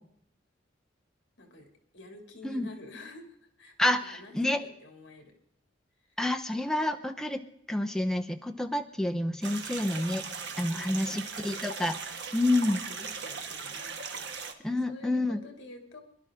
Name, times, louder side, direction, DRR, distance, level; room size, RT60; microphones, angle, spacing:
voice 1, 1.4-1.7 1.9-5.3 6.0-6.2 10.7-11.6 12.4-16.0, left 2 dB, 65° left, 3 dB, 2.8 m, -50 dB
voice 2, 3.8-4.7 6.2-10.2 10.6-12.8 14.6-15.4, left 1 dB, 5° left, 4 dB, 0.8 m, -29 dB
sound 1, 9.4-14.5, right 5 dB, 60° right, 1.4 m, -39 dB
23.5 x 11.5 x 3.7 m, 0.71 s
head